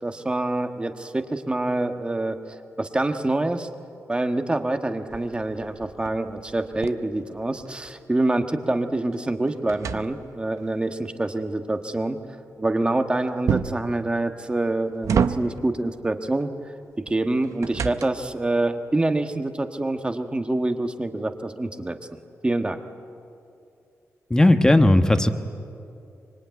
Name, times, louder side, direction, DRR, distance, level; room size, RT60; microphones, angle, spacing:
voice 1, 0.0-2.4 2.8-3.7 4.1-12.2 12.6-16.5 17.1-22.8, right 2 dB, 20° right, 7 dB, 1.4 m, -26 dB
sound 1, 5.1-8.0 8.4-10.6 13.5-13.9 14.6-15.8 17.1-18.4, right 7 dB, 75° right, 0.8 m, -29 dB
voice 2, 24.3-25.3, left 1 dB, 15° left, 8 dB, 1.2 m, -16 dB
25.0 x 23.5 x 9.4 m, 2.6 s
wide cardioid pair, 115°, 5 cm